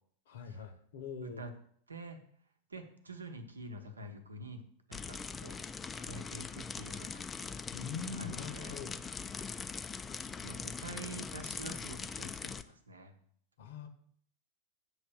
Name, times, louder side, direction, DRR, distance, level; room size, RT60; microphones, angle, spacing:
voice 1, 0.3-1.4 7.7-9.0 13.6-13.9, left 6 dB, 55° left, 7 dB, 0.9 m, -43 dB
voice 2, 1.2-1.5 1.9-2.2 2.7-4.6 4.9-5.6 6.0-7.3 8.1-8.8 10.4-13.1, right 1 dB, 75° right, 6 dB, 0.8 m, -47 dB
sound 1, 4.9-12.6, left 5 dB, 15° left, 0.3 m, -42 dB
7.3 x 3.1 x 6.1 m, 0.62 s
figure-of-eight pair, 90°, 0 cm